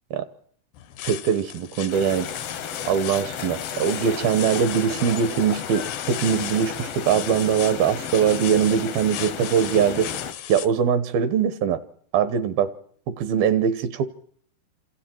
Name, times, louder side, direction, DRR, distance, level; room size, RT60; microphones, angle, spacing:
sound 1, 0.7-10.7, left 11 dB, 85° left, 3.3 m, -36 dB
voice 1, 1.1-2.3 2.9-10.1 10.5-11.8 12.1-12.7 13.1-14.1, right 7 dB, 75° right, 13 dB, 2.8 m, -22 dB
sound 2, 1.9-10.3, left 8 dB, 65° left, 1.5 m, -34 dB
28.5 x 27.0 x 4.5 m, 0.62 s
omnidirectional pair, 4.5 m